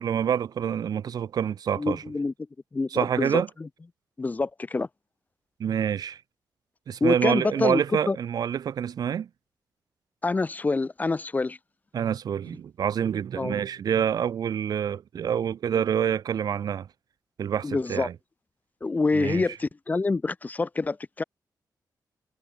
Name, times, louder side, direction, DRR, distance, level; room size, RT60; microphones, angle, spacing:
voice 1, 0.0-2.0 2.9-3.5 5.6-6.2 6.9-9.3 11.9-16.9 17.4-18.1 19.1-19.4, right 8 dB, 65° right, 0.6 m, -27 dB
voice 2, 1.8-2.3 2.7-3.7 4.2-4.9 7.0-7.8 8.1-8.2 10.2-11.6 13.4-13.6 17.6-18.1 18.8-21.2, left 3 dB, 20° left, 1.2 m, -26 dB
wide cardioid pair, 165°, 7 cm